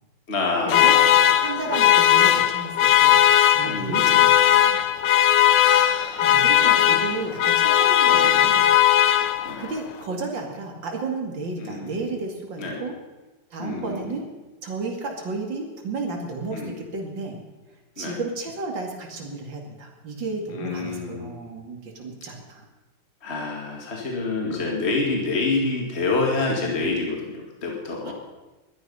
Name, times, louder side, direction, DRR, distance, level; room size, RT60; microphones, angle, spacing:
voice 1, 0.3-1.2 1.6-1.8 3.6-4.3 5.6-7.0 8.1-8.5 9.4-9.7 11.6-12.1 12.6-12.8 13.6-14.1 16.5-16.8 18.0-18.2 20.5-21.5 23.2-28.1, left 3 dB, 35° left, 0 dB, 2.4 m, -28 dB
sound 1, 0.7-9.7, left 11 dB, 70° left, 1.4 m, -18 dB
voice 2, 1.4-3.2 3.5-4.8 6.2-8.7 9.0-9.2 9.6-12.9 13.5-14.2 14.6-17.4 18.0-22.6 28.0-28.1, right 3 dB, 75° right, 1 dB, 3.0 m, -32 dB
20.0 x 12.5 x 5.6 m, 1.2 s
omnidirectional pair, 2.0 m